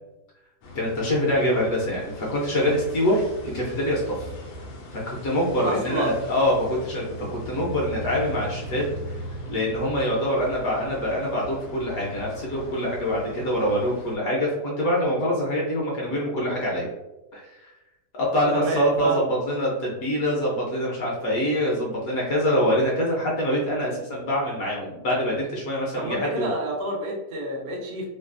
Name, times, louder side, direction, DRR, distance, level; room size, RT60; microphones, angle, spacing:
sound 1, 0.6-14.2, left 1 dB, 85° left, 1.3 m, -39 dB
voice 1, 0.7-3.2 3.5-4.3 4.9-9.2 9.5-16.9 17.3-17.7 18.1-26.5, equal, 65° left, -3 dB, 1.1 m, -25 dB
voice 2, 5.6-6.2 18.5-19.3 26.0-28.1, right 1 dB, 70° right, -1 dB, 0.6 m, -28 dB
3.2 x 2.4 x 2.4 m, 1.0 s
omnidirectional pair, 1.8 m